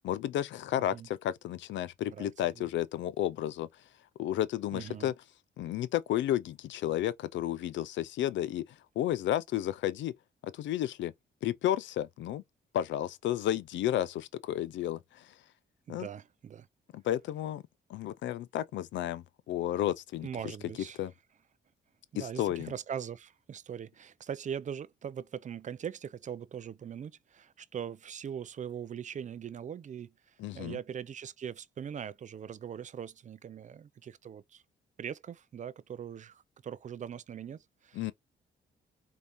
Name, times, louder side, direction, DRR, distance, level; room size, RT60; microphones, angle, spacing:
voice 1, 0.0-3.8 4.2-5.1 5.6-10.1 10.4-11.1 11.4-12.4 12.7-15.4 15.9-16.1 16.9-17.6 17.9-20.3 21.0-21.1 22.2-22.7 30.4-30.8 37.9-38.1, left 12 dB, 75° left, 0.4 m, -32 dB
voice 2, 4.7-5.1 15.9-16.7 20.2-21.0 22.1-34.6 35.0-38.1, right 8 dB, 40° right, 0.4 m, -41 dB
5.2 x 2.7 x 2.9 m
cardioid pair, 90°, 19 cm